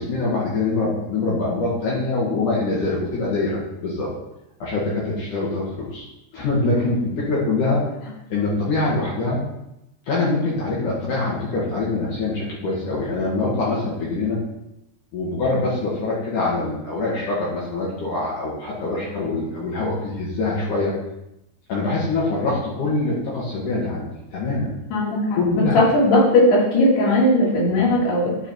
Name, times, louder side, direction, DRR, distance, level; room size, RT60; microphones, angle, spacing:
voice 1, 0.0-4.1 4.6-6.1 6.3-7.9 8.3-9.4 10.1-14.4 15.1-20.9 21.7-24.7 25.4-25.8, left 2 dB, 55° left, -6 dB, 3.0 m, -24 dB
voice 2, 24.9-28.4, left 1 dB, 85° left, -5 dB, 4.6 m, -18 dB
11.5 x 4.7 x 4.5 m, 0.86 s
omnidirectional pair, 4.6 m